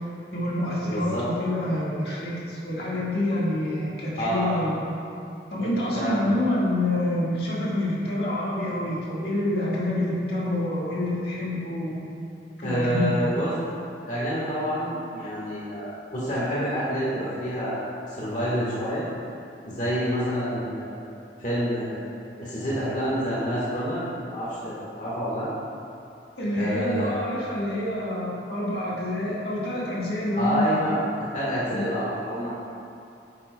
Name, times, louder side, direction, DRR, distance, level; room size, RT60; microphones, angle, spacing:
voice 1, 0.3-4.7 5.5-12.0 12.6-13.2 26.4-30.8 31.7-31.9, left 1 dB, 60° left, -6 dB, 1.6 m, -27 dB
voice 2, 0.8-1.2 4.2-4.5 5.9-6.2 12.6-13.5 14.1-17.8 18.1-19.1 19.6-22.0 22.4-24.0 24.3-25.5 26.5-27.2 30.4-31.0 31.3-32.5, equal, 45° left, -8 dB, 1.4 m, -28 dB
9.1 x 8.6 x 2.2 m, 2.6 s
head